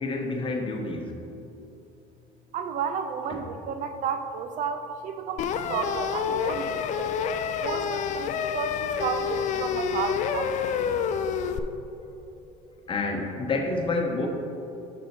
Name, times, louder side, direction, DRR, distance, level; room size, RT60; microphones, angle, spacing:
voice 1, 0.0-1.1 12.9-14.3, left 3 dB, 35° left, 2 dB, 0.9 m, -28 dB
voice 2, 2.5-7.1 7.6-10.7 11.1-11.2, right 6 dB, 55° right, 7 dB, 0.5 m, -32 dB
sound 1, 5.4-11.6, left 7 dB, 50° left, 0.4 m, -28 dB
6.3 x 5.3 x 4.3 m, 3.0 s
supercardioid pair, 100°, 16 cm